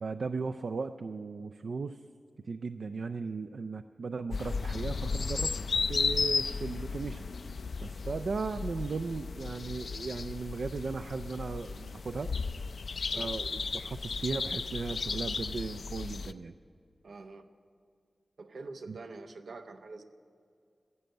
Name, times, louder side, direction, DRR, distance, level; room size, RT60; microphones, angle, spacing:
voice 1, 0.0-2.0 2.4-5.6 5.9-7.3 7.8-12.3 13.1-16.5 18.9-19.0, right 4 dB, 70° right, 8 dB, 0.3 m, -36 dB
sound 1, 4.3-16.3, left 4 dB, 80° left, 0.4 m, -34 dB
voice 2, 17.0-17.5 18.4-20.0, right 3 dB, 90° right, 7 dB, 0.8 m, -46 dB
15.5 x 7.8 x 9.2 m, 2.3 s
wide cardioid pair, 110°, 0 cm